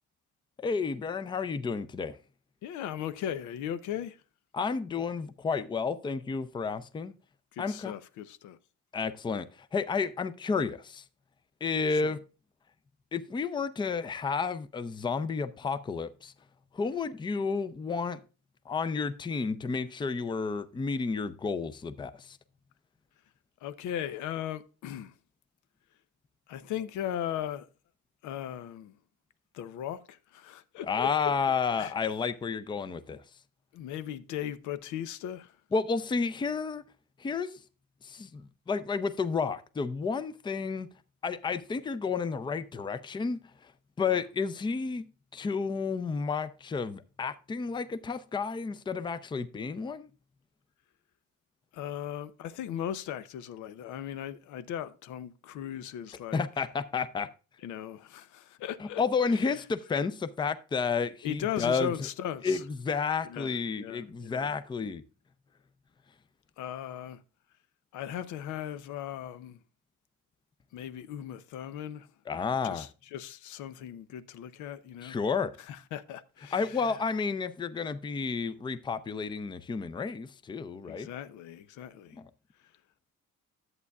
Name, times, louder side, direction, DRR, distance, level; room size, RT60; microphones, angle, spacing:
voice 1, 0.6-2.2 4.5-7.1 7.6-7.9 8.9-11.0 11.6-12.2 13.1-16.3 16.7-18.2 18.7-22.4 30.9-33.2 35.7-36.8 37.2-37.6 38.0-40.9 41.2-43.7 44.0-45.1 45.3-50.1 56.3-57.3 58.8-61.9 62.4-65.0 72.3-72.9 75.0-75.5 76.5-81.1 82.2-82.3, left 5 dB, 15° left, 0.4 m, -31 dB
voice 2, 2.6-4.2 7.5-8.6 11.9-12.2 23.6-25.1 26.5-27.7 28.2-29.0 29.5-31.1 31.8-31.9 33.7-35.6 44.0-44.2 51.7-56.4 57.6-59.0 61.2-62.6 63.3-64.5 66.6-67.2 67.9-69.6 70.7-72.1 72.6-75.2 75.7-76.8 80.9-82.2, left 10 dB, 90° left, 0.7 m, -38 dB
11.0 x 8.1 x 2.3 m
cardioid pair, 140°, 29 cm